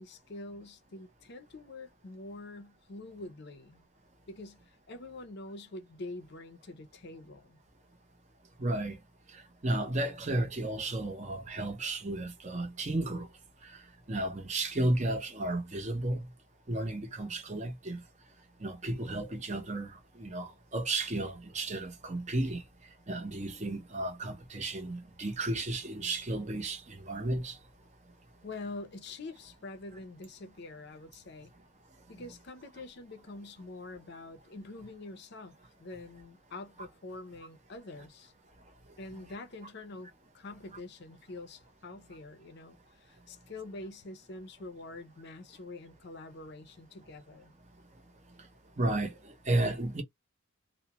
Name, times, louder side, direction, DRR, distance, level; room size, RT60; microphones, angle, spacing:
voice 1, 0.0-3.8 4.3-7.6 28.4-31.5 32.1-38.3 39.0-47.5, left 2 dB, 50° left, 0.5 m, -45 dB
voice 2, 8.6-9.0 9.3-13.3 13.6-13.8 14.1-16.2 16.7-18.0 18.6-22.6 23.1-27.6 32.2-32.3 48.8-50.0, right 2 dB, 35° right, 0.7 m, -33 dB
2.3 x 2.1 x 2.8 m
head